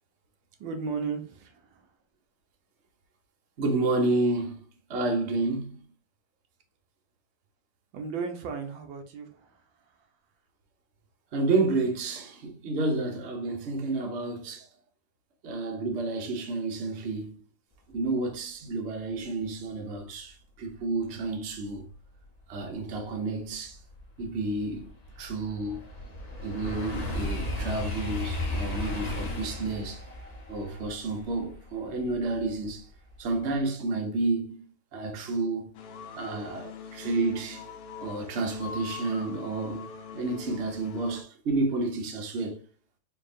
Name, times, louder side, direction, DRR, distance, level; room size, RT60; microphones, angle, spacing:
voice 1, 0.6-1.9 7.9-10.1 14.6-14.7, right 5 dB, 90° right, 1.5 m, -36 dB
voice 2, 3.6-4.6 4.9-5.8 11.3-14.6 15.4-17.4 17.9-21.8 22.5-23.8 24.2-24.9 25.2-25.8 26.4-30.0 30.5-32.9 33.2-35.7 36.2-37.7 38.0-42.6, right 3 dB, 50° right, 0.9 m, -30 dB
sound 1, 23.1-23.2 23.6-32.7 33.1-33.5, left 1 dB, 40° left, 0.6 m, -35 dB
sound 2, 35.7-41.2, left 6 dB, 70° left, 1.2 m, -42 dB
4.5 x 2.8 x 2.5 m
omnidirectional pair, 2.0 m